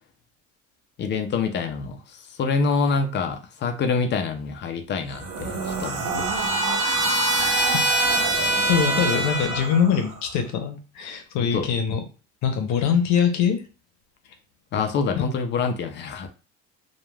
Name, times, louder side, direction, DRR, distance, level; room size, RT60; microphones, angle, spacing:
voice 1, 1.0-6.3 11.4-11.7 14.7-16.3, left 4 dB, 35° left, 6 dB, 0.4 m, -26 dB
Trumpet, 5.1-9.8, right 1 dB, 10° right, 1.1 m, -25 dB
sound 1, 5.1-10.3, right 4 dB, 90° right, 0.9 m, -29 dB
voice 2, 8.6-12.0 12.4-13.6 15.2-15.3, left 7 dB, 65° left, 6 dB, 0.7 m, -23 dB
3.1 x 2.2 x 2.2 m, 0.33 s
cardioid pair, 135°, 31 cm